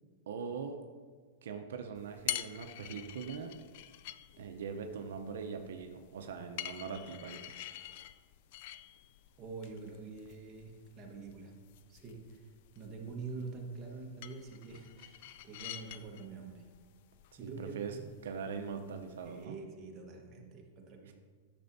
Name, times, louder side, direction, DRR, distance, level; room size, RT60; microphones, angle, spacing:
voice 1, 0.3-0.8 1.4-3.5 4.4-7.4 15.3-15.4 17.4-18.0 18.2-19.6 21.0-21.1, right 6 dB, 85° right, 5 dB, 0.7 m, -41 dB
sound 1, 1.9-19.4, left 13 dB, 60° left, 0.4 m, -47 dB
voice 2, 9.4-11.6 11.9-16.7 17.4-18.1 19.2-21.1, right 4 dB, 30° right, 0 dB, 1.4 m, -46 dB
10.0 x 6.7 x 2.7 m, 1.5 s
supercardioid pair, 140°, 0 cm